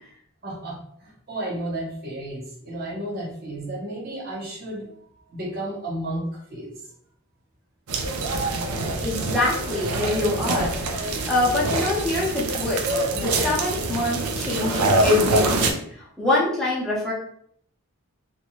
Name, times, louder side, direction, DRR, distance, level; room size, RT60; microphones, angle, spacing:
voice 1, 0.4-5.0 5.3-6.8, right 1 dB, 45° right, -2 dB, 0.8 m, -33 dB
sound 1, 7.9-15.7, right 2 dB, 90° right, 0.5 m, -25 dB
voice 2, 9.0-17.1, left 2 dB, ahead, -7 dB, 0.8 m, -25 dB
2.6 x 2.2 x 3.0 m, 0.64 s
head